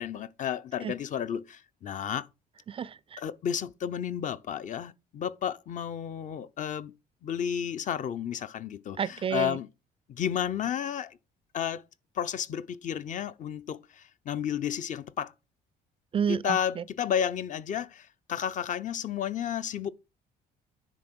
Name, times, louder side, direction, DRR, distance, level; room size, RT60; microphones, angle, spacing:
voice 1, 0.0-2.3 3.2-6.9 7.2-9.7 10.1-11.2 11.5-11.8 12.1-15.3 16.3-19.9, left 9 dB, 45° left, 0.7 m, -32 dB
voice 2, 2.7-3.2 9.0-9.6 16.1-16.8, right 7 dB, 35° right, 0.4 m, -30 dB
10.5 x 3.7 x 6.1 m
cardioid pair, 110°, 17 cm